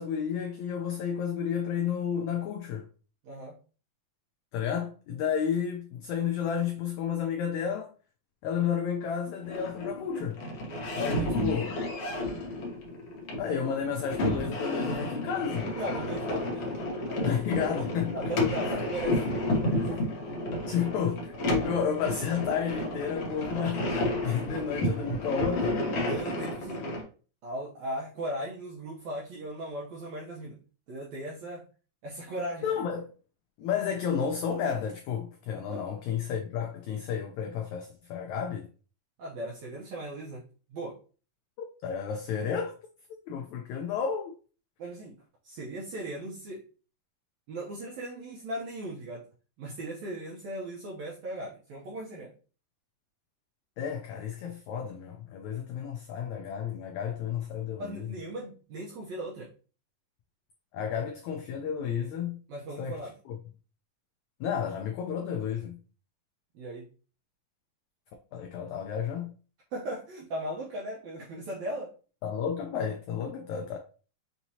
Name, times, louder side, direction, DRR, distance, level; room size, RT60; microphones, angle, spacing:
voice 1, 0.0-2.9 4.5-7.9 8.4-10.4 10.9-11.8 13.4-15.7 17.2-18.3 18.6-18.7 20.3-20.4 20.7-21.3 21.6-25.9 32.6-33.1 33.6-38.7 41.6-42.8 43.3-44.3 53.8-58.1 60.7-62.4 62.8-63.0 63.3-63.4 64.4-65.8 68.3-69.3 72.2-73.8, left 7 dB, 85° left, 1.6 m, -32 dB
voice 2, 3.2-3.6 15.7-17.4 18.1-20.2 26.0-26.9 27.4-30.6 30.9-31.6 32.0-32.6 35.5-35.8 39.2-40.4 40.7-41.0 44.8-45.2 45.4-46.6 47.5-49.3 49.6-52.3 57.8-59.5 62.5-63.2 66.5-66.9 69.7-71.9, right 1 dB, 70° right, 1.7 m, -38 dB
sound 1, 9.4-27.0, left 1 dB, 60° left, 1.6 m, -31 dB
5.9 x 2.9 x 2.7 m
omnidirectional pair, 3.9 m